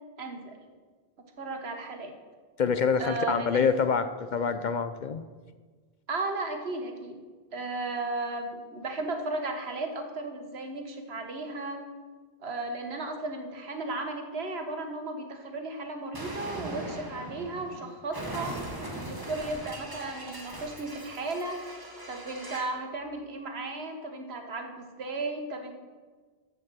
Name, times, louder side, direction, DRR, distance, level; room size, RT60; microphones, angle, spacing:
voice 1, 0.2-0.6 1.4-2.1 3.0-3.7 6.1-7.2 7.5-11.8 12.4-18.6 18.9-21.8 22.1-25.7, right 2 dB, 75° right, 4 dB, 1.5 m, -35 dB
voice 2, 2.6-5.2, left 6 dB, 55° left, 10 dB, 0.6 m, -26 dB
Explosion, 16.1-22.8, right 1 dB, 20° right, 1.2 m, -40 dB
13.5 x 5.1 x 7.5 m, 1.5 s
omnidirectional pair, 1.1 m